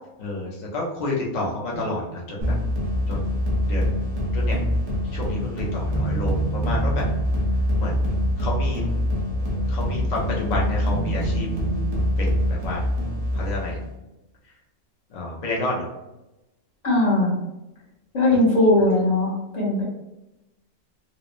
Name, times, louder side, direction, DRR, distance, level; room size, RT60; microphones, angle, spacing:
voice 1, 0.2-2.5 3.1-4.0 4.3-4.6 5.1-7.0 7.8-8.8 9.7-11.5 12.2-12.8 13.3-13.8 15.1-15.9, left 2 dB, 50° left, -3 dB, 0.5 m, -30 dB
sound 1, 1.7-2.4 5.8-8.9 9.4-12.1, right 4 dB, 85° left, 1.2 m, -32 dB
sound 2, 2.4-13.9, left 1 dB, 65° right, 0.3 m, -24 dB
voice 2, 16.8-17.3 18.1-19.8, left 1 dB, 35° left, -7 dB, 0.9 m, -19 dB
2.9 x 2.0 x 2.4 m, 0.96 s
omnidirectional pair, 1.5 m